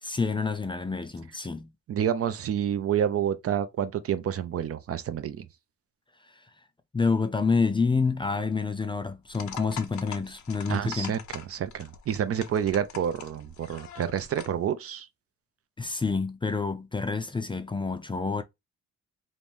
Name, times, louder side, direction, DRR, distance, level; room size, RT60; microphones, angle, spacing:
voice 1, 0.0-1.7 6.3-6.4 6.9-11.1 15.8-18.4, left 4 dB, 15° left, 0.4 m, -28 dB
voice 2, 1.9-5.5 10.7-15.1, right 9 dB, 50° right, 0.5 m, -29 dB
sound 1, 9.3-14.6, left 8 dB, 70° left, 0.7 m, -44 dB
3.0 x 2.6 x 3.5 m
cardioid pair, 90°, 30 cm